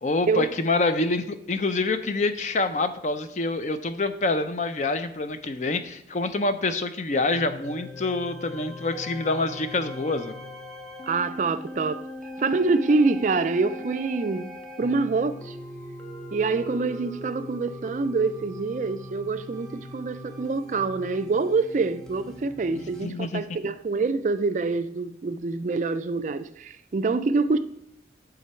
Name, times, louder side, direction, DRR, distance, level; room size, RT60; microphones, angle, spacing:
voice 1, 0.0-10.3 22.7-23.7, left 3 dB, 40° left, 0.5 m, -26 dB
sound 1, 7.3-23.1, left 1 dB, 5° left, 0.7 m, -40 dB
voice 2, 11.0-12.0 12.4-14.5 14.8-15.6 16.3-27.6, right 3 dB, 40° right, 0.3 m, -26 dB
10.5 x 3.8 x 4.4 m
head